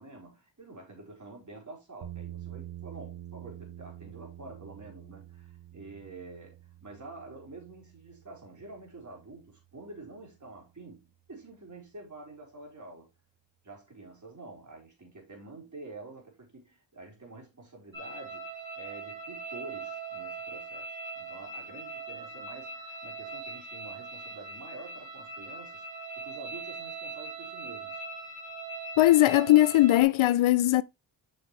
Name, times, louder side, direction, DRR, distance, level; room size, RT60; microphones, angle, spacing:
voice 1, 0.0-13.1 13.6-28.0, right 2 dB, 35° right, 4.4 m, -48 dB
sound 1, 2.0-10.1, right 13 dB, 85° right, 1.2 m, -47 dB
sound 2, 17.9-30.0, right 3 dB, 70° right, 3.5 m, -41 dB
voice 2, 29.0-30.8, left 15 dB, 75° left, 0.5 m, -20 dB
7.2 x 6.3 x 3.2 m
cardioid pair, 60°, 49 cm